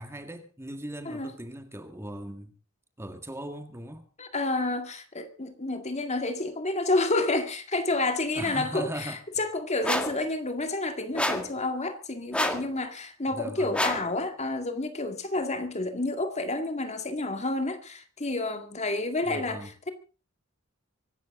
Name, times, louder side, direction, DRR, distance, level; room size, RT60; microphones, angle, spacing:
voice 1, 0.0-2.5 3.0-4.1 8.4-9.2 13.3-13.8 19.2-19.7, right 1 dB, 15° right, 1.8 m, -39 dB
voice 2, 4.2-19.9, left 2 dB, 35° left, 2.1 m, -29 dB
sound 1, 9.8-10.2 11.2-11.6 12.3-12.7 13.7-14.1, left 1 dB, 5° left, 1.7 m, -28 dB
24.5 x 12.5 x 3.7 m
head